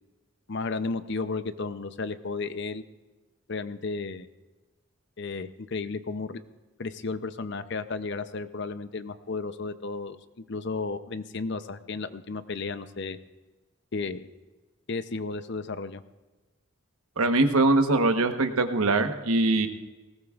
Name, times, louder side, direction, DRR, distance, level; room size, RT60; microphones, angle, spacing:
voice 1, 0.5-2.8 3.5-4.3 5.2-6.4 6.8-13.2 13.9-14.3 14.9-16.0, left 4 dB, 55° left, 11 dB, 0.6 m, -33 dB
voice 2, 17.2-19.7, right 2 dB, 85° right, 6 dB, 1.1 m, -22 dB
19.5 x 16.5 x 2.4 m, 1.2 s
head